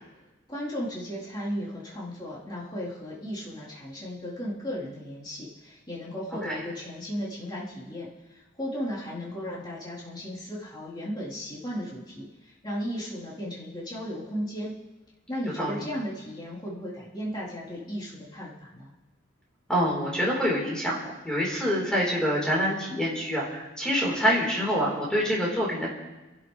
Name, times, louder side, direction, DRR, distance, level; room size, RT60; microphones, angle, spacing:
voice 1, 0.5-14.7 15.3-18.9, equal, 20° left, -9 dB, 3.8 m, -35 dB
voice 2, 19.7-25.9, equal, 5° left, -4 dB, 4.2 m, -26 dB
28.5 x 12.0 x 3.4 m, 1.1 s
head